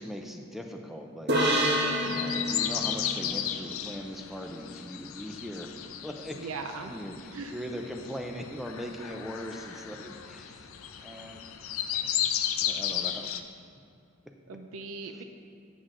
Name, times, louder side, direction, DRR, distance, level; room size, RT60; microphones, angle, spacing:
voice 1, 0.0-5.7 6.0-6.5 6.8-10.7 11.0-11.4 11.9-12.2 12.6-13.3 14.3-14.4, equal, ahead, 3 dB, 0.4 m, -40 dB
sound 1, 1.3-4.8, equal, 55° right, 1.0 m, -29 dB
sound 2, 2.0-13.4, left 10 dB, 80° left, 0.5 m, -34 dB
voice 2, 6.3-6.9 7.3-7.6 11.0-11.2 14.5-15.2, right 4 dB, 85° right, 6 dB, 0.5 m, -40 dB
9.3 x 6.2 x 3.7 m, 2.5 s
head